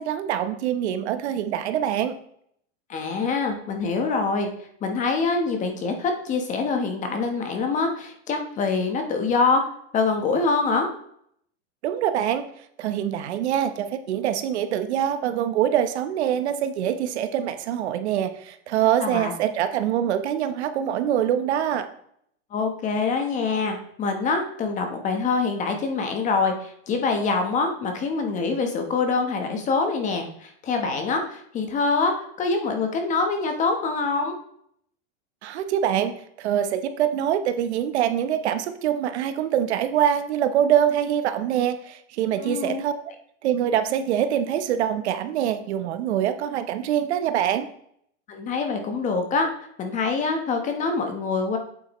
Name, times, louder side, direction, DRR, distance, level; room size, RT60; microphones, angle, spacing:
voice 1, 0.0-2.1 11.8-12.4 12.8-21.9 35.4-36.1 36.4-42.9 43.4-47.7, right 10 dB, 75° right, 10 dB, 1.0 m, -24 dB
voice 2, 2.9-4.5 4.8-9.6 9.9-10.9 19.0-19.3 22.5-34.4 42.4-42.8 48.3-49.5 49.8-51.6, left 4 dB, 20° left, 5 dB, 1.1 m, -25 dB
8.4 x 7.9 x 3.1 m, 0.67 s
supercardioid pair, 155°, 34 cm